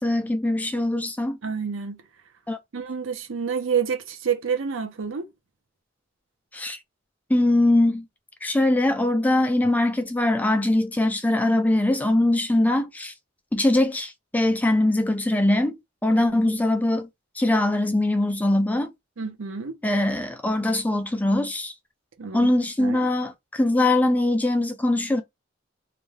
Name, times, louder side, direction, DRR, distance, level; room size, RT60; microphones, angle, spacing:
voice 1, 0.0-1.4 2.5-2.6 6.5-6.8 7.3-8.1 8.4-13.1 13.5-17.1 17.4-18.9 19.8-21.7 22.3-25.2, left 1 dB, 10° left, 0.3 m, -22 dB
voice 2, 1.4-2.0 2.7-5.3 16.1-16.5 19.2-19.8 22.2-22.5 22.8-23.1, right 6 dB, 70° right, 0.6 m, -29 dB
2.5 x 2.2 x 3.1 m
head